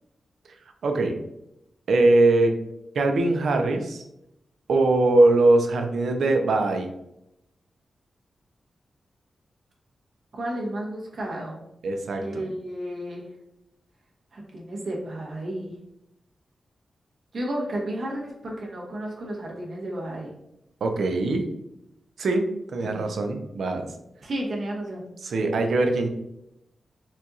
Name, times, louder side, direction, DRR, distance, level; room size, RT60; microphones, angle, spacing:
voice 1, 0.8-1.1 1.9-2.5 2.9-4.0 4.7-6.9 11.8-12.2 20.8-21.4 22.2-23.9 25.2-26.1, right 2 dB, 75° right, 5 dB, 0.5 m, -21 dB
voice 2, 10.3-11.6 12.2-13.3 14.3-15.7 17.3-20.3 22.8-23.1 24.2-25.1, right 1 dB, 55° right, -2 dB, 1.0 m, -32 dB
4.3 x 2.3 x 2.6 m, 0.84 s
wide cardioid pair, 120°, 0 cm